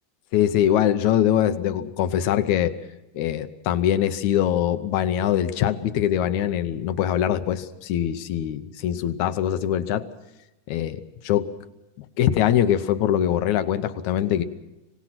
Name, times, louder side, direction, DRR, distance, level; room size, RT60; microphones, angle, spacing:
voice 1, 0.3-2.7 3.2-10.1 10.7-11.5 12.2-14.4, left 10 dB, 70° left, 12 dB, 2.1 m, -23 dB
25.0 x 18.5 x 5.8 m, 0.99 s
omnidirectional pair, 3.8 m